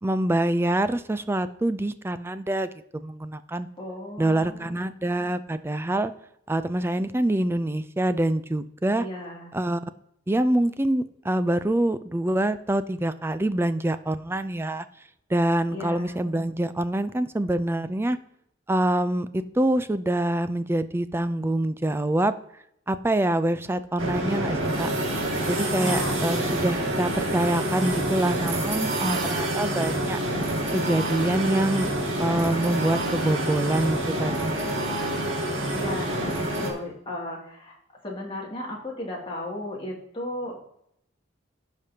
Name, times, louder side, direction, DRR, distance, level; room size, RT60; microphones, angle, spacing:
voice 1, 0.0-3.7 4.2-6.1 6.5-9.1 9.5-9.8 10.3-14.9 15.3-18.2 18.7-22.3 22.9-24.9 25.5-30.2 30.7-31.9 32.2-34.7, right 1 dB, 10° right, 12 dB, 0.4 m, -25 dB
voice 2, 3.8-4.7 9.0-9.5 15.7-16.2 25.8-26.3 35.7-37.8 38.0-40.6, left 1 dB, 25° left, -3 dB, 2.4 m, -35 dB
sound 1, 24.0-36.7, right 1 dB, 75° right, 2.1 m, -27 dB
15.5 x 5.2 x 2.8 m, 0.74 s
head